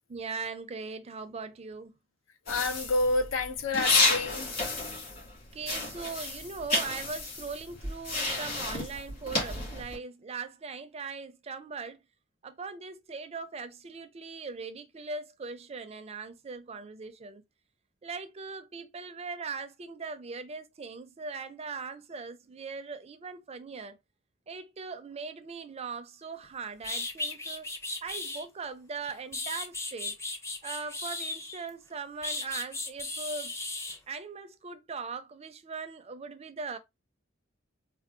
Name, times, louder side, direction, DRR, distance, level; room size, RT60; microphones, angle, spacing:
voice 1, 0.1-1.9 5.5-12.0 12.4-17.4 18.0-24.0 24.5-27.7 28.0-30.2 30.6-33.5 34.1-36.8, right 4 dB, 30° right, 0.5 m, -40 dB
voice 2, 2.5-4.5, left 3 dB, 85° left, 0.6 m, -28 dB
sound 1, 2.5-5.4 5.6-10.0, left 2 dB, 50° left, 2.2 m, -31 dB
sound 2, 26.4-26.5 26.8-28.5 29.0-31.7 32.2-34.0, left 2 dB, 15° left, 0.6 m, -36 dB
4.4 x 2.3 x 2.5 m
head